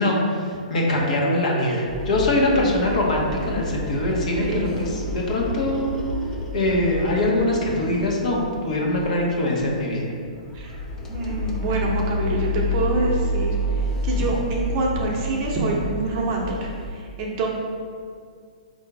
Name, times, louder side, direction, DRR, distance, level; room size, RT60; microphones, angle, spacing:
voice 1, 0.0-5.9 6.5-10.1, left 1 dB, 60° left, -2 dB, 1.0 m, -23 dB
sound 1, 1.9-8.6 8.9-9.2 9.6-9.7 10.2-16.9, left 1 dB, 15° left, 0.4 m, -29 dB
voice 2, 11.1-13.5 14.0-17.5, right 3 dB, 30° right, -2 dB, 0.7 m, -26 dB
3.8 x 2.6 x 4.6 m, 2.1 s
hypercardioid pair, 155°, 4 cm